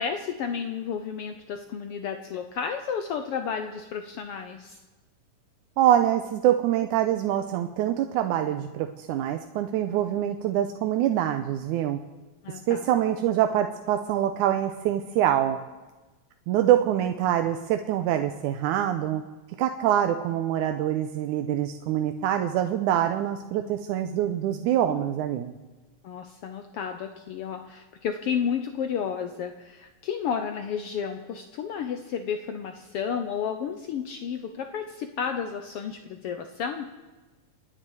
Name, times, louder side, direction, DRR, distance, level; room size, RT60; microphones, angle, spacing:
voice 1, 0.0-4.8 12.4-12.9 26.0-36.9, left 7 dB, 85° left, 7 dB, 1.2 m, -32 dB
voice 2, 5.8-12.0 12.7-15.6 16.5-19.2 19.6-25.5, right 11 dB, 80° right, 6 dB, 2.1 m, -25 dB
29.0 x 10.0 x 4.8 m, 1.2 s
omnidirectional pair, 3.7 m